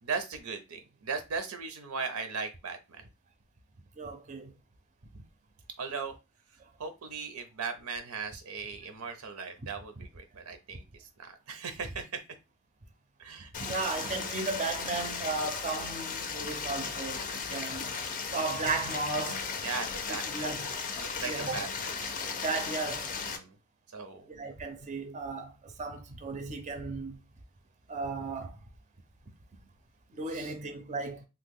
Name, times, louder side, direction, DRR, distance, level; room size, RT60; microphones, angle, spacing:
voice 1, 0.0-3.0 5.8-6.1 6.8-12.2 13.2-13.5 17.3-17.5 19.6-22.4 23.2-23.6 23.9-24.3 30.3-30.5, right 5 dB, 85° right, 0.6 m, -38 dB
voice 2, 4.0-4.5 6.6-6.7 13.6-17.9 18.3-19.5 20.1-20.7 21.2-21.6 22.4-23.1 24.3-27.2 27.9-28.6 30.1-31.2, right 3 dB, 35° right, 0.5 m, -35 dB
Stream, 13.5-23.4, left 5 dB, 35° left, 0.5 m, -36 dB
3.0 x 2.1 x 3.5 m
head